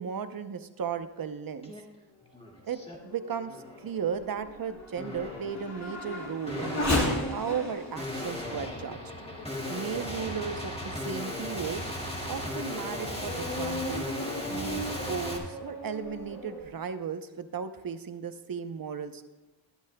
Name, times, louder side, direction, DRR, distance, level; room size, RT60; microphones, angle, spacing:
voice 1, 0.0-1.7 2.6-6.8 7.3-9.0 9.7-11.8 12.3-14.1 14.5-19.2, right 7 dB, 50° right, 10 dB, 0.8 m, -35 dB
sound 1, 1.6-1.8 2.2-3.0 3.5-3.9 5.0-5.6 6.5-15.4, left 1 dB, 10° left, 1.9 m, -37 dB
Race car auto racing / Accelerating revving vroom, 2.6-10.5 11.1-11.2 11.8-16.6, left 1 dB, 35° left, 3.5 m, -36 dB
19.0 x 11.5 x 2.3 m, 1.2 s
wide cardioid pair, 85°, 46 cm